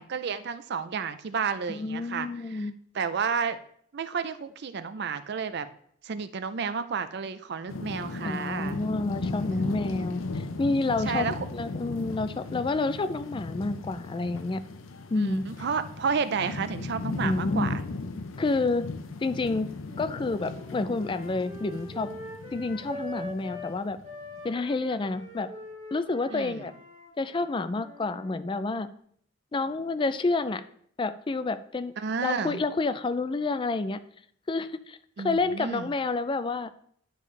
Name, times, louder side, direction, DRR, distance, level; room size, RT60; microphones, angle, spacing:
voice 1, 0.0-2.7 2.9-3.6 3.9-5.7 6.0-8.8 11.1-11.4 15.2-17.7 26.3-26.6 32.0-32.6 35.2-35.9, right 6 dB, 55° right, 12 dB, 0.5 m, -31 dB
voice 2, 1.7-2.7 8.2-14.6 15.1-15.4 17.2-17.7 18.4-18.9 19.2-19.7 20.0-22.1 22.5-24.0 24.4-25.5 25.9-26.7 27.2-28.9 29.5-30.6 31.0-31.9 32.2-34.0 34.5-36.7, left 3 dB, 25° left, 12 dB, 0.3 m, -29 dB
sound 1, 7.7-24.5, left 3 dB, 90° left, 0.6 m, -37 dB
sound 2, 19.9-23.7 24.0-28.4, left 1 dB, 35° right, 2.0 m, -43 dB
10.5 x 5.1 x 3.2 m, 0.64 s
head